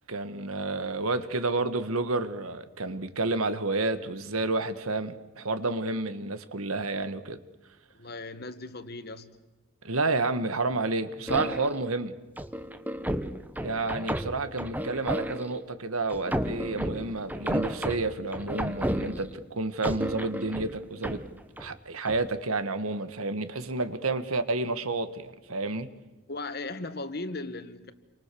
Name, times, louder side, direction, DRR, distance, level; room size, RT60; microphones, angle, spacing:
voice 1, 0.1-7.4 9.8-12.2 13.6-21.2 21.6-25.9, right 3 dB, 90° right, 10 dB, 1.8 m, -30 dB
voice 2, 7.9-9.4 24.2-24.4 26.3-27.9, left 2 dB, 45° left, 11 dB, 1.5 m, -37 dB
sound 1, 11.3-11.9 12.4-15.6 16.1-19.5 19.8-21.7 22.1-22.3, equal, 10° right, 1.0 m, -32 dB
29.5 x 24.5 x 7.0 m, 1.1 s
head